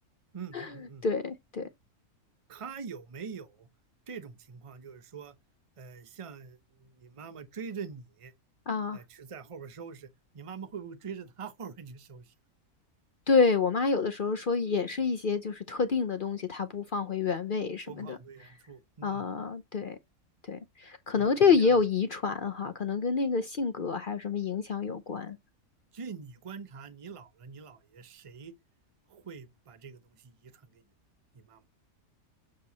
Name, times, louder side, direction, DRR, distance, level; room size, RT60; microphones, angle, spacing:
voice 1, 0.3-1.0 2.5-3.7 4.1-5.4 5.8-8.3 8.9-10.1 10.3-12.3 17.9-19.3 21.1-21.8 25.9-28.5 29.1-30.8 31.3-31.6, right 6 dB, 30° right, 0.7 m, -44 dB
voice 2, 1.0-1.7 8.7-9.0 13.3-18.2 19.0-20.0 20.5-25.4, left 5 dB, 50° left, 0.7 m, -28 dB
7.4 x 4.6 x 4.0 m
omnidirectional pair, 1.6 m